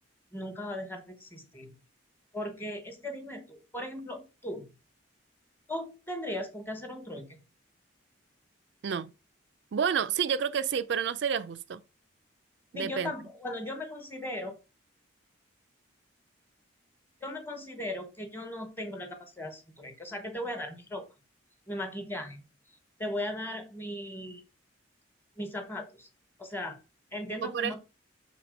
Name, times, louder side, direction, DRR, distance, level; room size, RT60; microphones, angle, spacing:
voice 1, 0.3-1.7 2.3-4.7 5.7-7.4 12.7-14.6 17.2-21.0 21.7-22.4 23.0-24.4 25.4-26.1 26.4-26.8 27.1-27.8, left 1 dB, 10° left, 1.3 m, -37 dB
voice 2, 9.7-11.8 12.7-13.1 27.4-27.8, right 7 dB, 60° right, 0.4 m, -29 dB
6.3 x 4.2 x 5.2 m
head